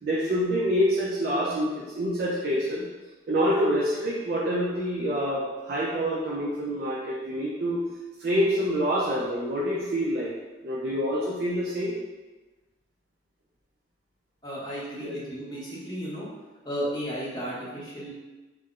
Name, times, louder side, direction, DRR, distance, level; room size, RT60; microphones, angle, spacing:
voice 1, 0.0-2.8 3.3-7.9 8.2-10.3 10.6-11.9 15.0-15.2, equal, 55° right, -5 dB, 0.4 m, -26 dB
voice 2, 14.4-16.3 16.6-18.1, equal, 25° left, -7 dB, 0.7 m, -34 dB
2.4 x 2.0 x 3.5 m, 1.2 s
head